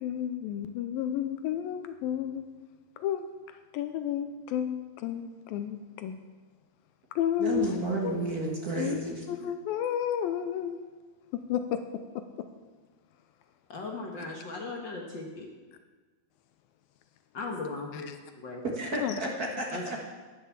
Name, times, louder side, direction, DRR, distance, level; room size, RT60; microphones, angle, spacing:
voice 1, 0.0-2.5 3.0-6.2 7.2-7.8 8.0-8.2 8.8-9.0 9.3-10.8 11.5-11.9 17.9-18.2 19.0-19.2, left 10 dB, 85° left, 9 dB, 2.4 m, -32 dB
voice 2, 7.4-9.2 18.6-20.0, right 2 dB, 75° right, -1 dB, 0.8 m, -32 dB
voice 3, 13.7-15.5 17.3-18.1 18.4-18.6 19.7-20.0, left 3 dB, 55° left, 0 dB, 1.2 m, -37 dB
11.0 x 11.0 x 7.2 m, 1.3 s
omnidirectional pair, 4.3 m